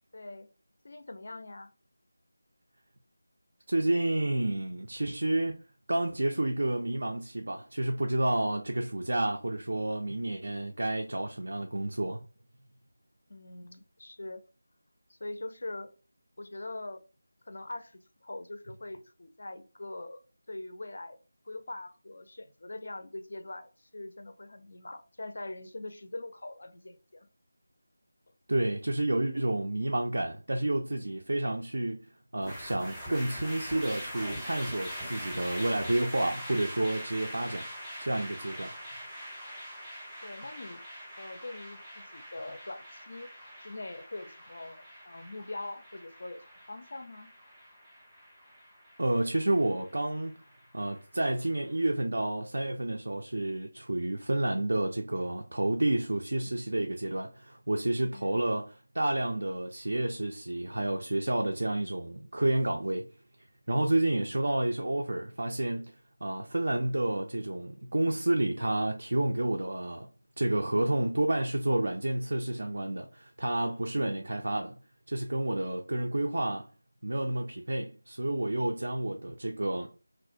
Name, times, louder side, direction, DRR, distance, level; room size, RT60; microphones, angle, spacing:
voice 1, 0.1-0.5 0.8-1.7 13.3-14.4 15.1-15.9 16.4-17.0 17.5-20.2 20.5-21.2 21.4-27.3 40.2-40.8 41.2-43.3 43.6-47.3 58.1-58.4 64.0-64.3, left 2 dB, 55° left, 0.4 m, -43 dB
voice 2, 3.7-5.6 5.9-12.2 28.5-37.7 38.0-38.7 49.0-50.3 50.7-63.1 63.7-66.0 66.2-70.1 70.4-74.8 75.1-76.7 77.0-79.9, right 1 dB, 65° right, 0.3 m, -30 dB
sound 1, 32.4-51.7, equal, ahead, 0.5 m, -43 dB
2.4 x 2.0 x 2.5 m
figure-of-eight pair, 165°, 0 cm